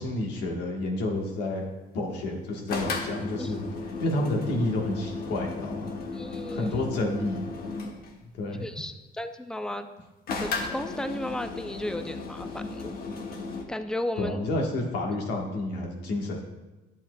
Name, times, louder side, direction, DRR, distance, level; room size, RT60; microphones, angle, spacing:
voice 1, 0.0-1.6 1.9-3.6 4.0-5.9 6.5-7.5 8.4-8.6 14.2-16.4, left 2 dB, 90° left, 1 dB, 1.4 m, -29 dB
sound 1, 2.7-8.1 10.3-13.6, left 3 dB, 65° left, 1.1 m, -35 dB
voice 2, 6.1-6.8 8.6-9.9 10.4-12.9 13.7-14.4, left 1 dB, 5° left, 9 dB, 0.4 m, -34 dB
10.5 x 7.1 x 2.3 m, 1.1 s
cardioid pair, 110°, 17 cm